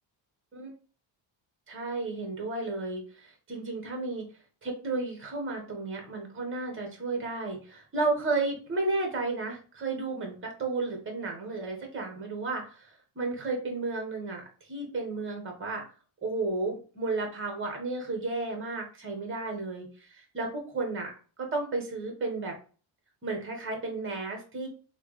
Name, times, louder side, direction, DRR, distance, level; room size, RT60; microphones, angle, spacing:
voice 1, 1.7-4.2 4.6-15.8 16.2-21.1 21.4-22.5 23.2-24.7, right 3 dB, 25° right, 2 dB, 1.4 m, -33 dB
6.0 x 2.4 x 3.2 m, 0.38 s
cardioid pair, 170°, 45 cm